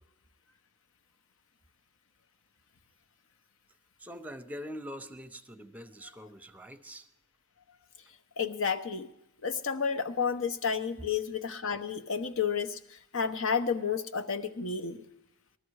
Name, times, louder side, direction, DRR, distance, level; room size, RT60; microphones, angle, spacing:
voice 1, 4.0-7.1, equal, 5° right, 11 dB, 0.8 m, -43 dB
voice 2, 8.4-9.1 9.4-15.0, left 6 dB, 65° left, 10 dB, 0.9 m, -31 dB
19.5 x 13.0 x 4.7 m, 0.84 s
head